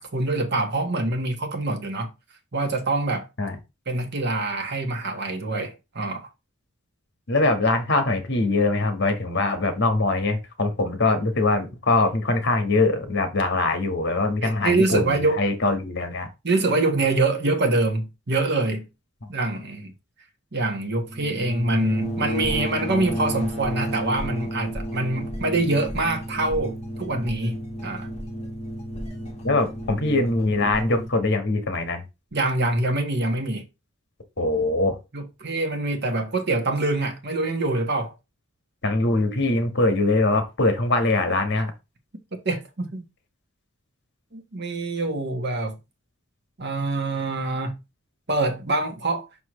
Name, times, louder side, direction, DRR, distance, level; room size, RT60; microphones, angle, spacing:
voice 1, 0.0-2.1 2.5-3.3 3.9-6.3 14.4-15.4 16.4-18.9 19.3-19.9 20.5-28.1 32.3-33.6 35.1-38.1 42.4-43.0 44.3-45.8 46.6-47.8 48.3-49.2, right 2 dB, 50° right, 1.3 m, -25 dB
voice 2, 7.3-16.3 29.4-32.0 34.4-35.0 38.8-41.7, left 2 dB, 50° left, 1.4 m, -22 dB
sound 1, 21.0-31.1, equal, 30° left, 1.6 m, -32 dB
6.1 x 5.8 x 3.1 m
head